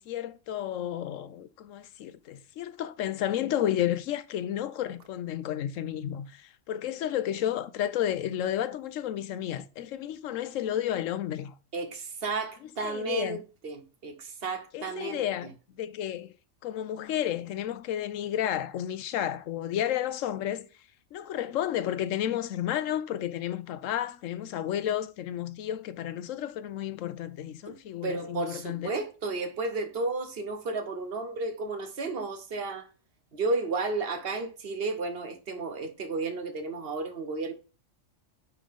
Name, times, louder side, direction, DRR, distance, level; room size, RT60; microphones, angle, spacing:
voice 1, 0.0-11.5 12.8-13.4 14.7-15.5 15.8-16.3 16.6-20.7 21.1-28.9, left 11 dB, 85° left, 1.0 m, -32 dB
voice 2, 11.7-15.5 27.7-27.8 28.0-32.9 33.3-37.5, right 3 dB, 50° right, 1.1 m, -33 dB
9.3 x 3.8 x 3.5 m
omnidirectional pair, 1.3 m